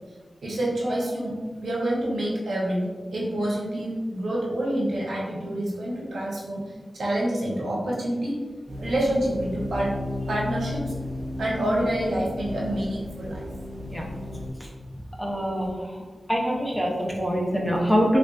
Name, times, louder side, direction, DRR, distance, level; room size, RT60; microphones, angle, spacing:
voice 1, 0.4-1.3 1.6-6.6 6.9-8.4 8.8-9.9 10.3-10.9 11.4-13.4, right 1 dB, 85° right, -4 dB, 0.7 m, -27 dB
sound 1, 8.7-14.5, left 1 dB, 50° right, 0.6 m, -34 dB
voice 2, 15.2-15.9 16.3-18.2, equal, 5° left, -2 dB, 0.6 m, -24 dB
3.3 x 2.5 x 2.3 m, 1.5 s
wide cardioid pair, 65°, 0 cm